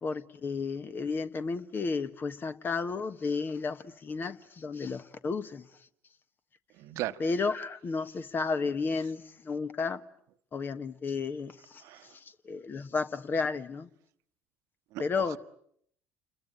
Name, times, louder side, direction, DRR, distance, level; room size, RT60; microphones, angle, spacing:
voice 1, 0.0-5.6 7.2-10.0 10.5-11.8 12.1-13.9 15.0-15.4, left 4 dB, 35° left, 1.4 m, -32 dB
voice 2, 6.8-7.2 11.8-12.1 14.9-15.4, right 15 dB, 55° right, 1.1 m, -37 dB
29.5 x 22.0 x 8.9 m
figure-of-eight pair, 60°, 6 cm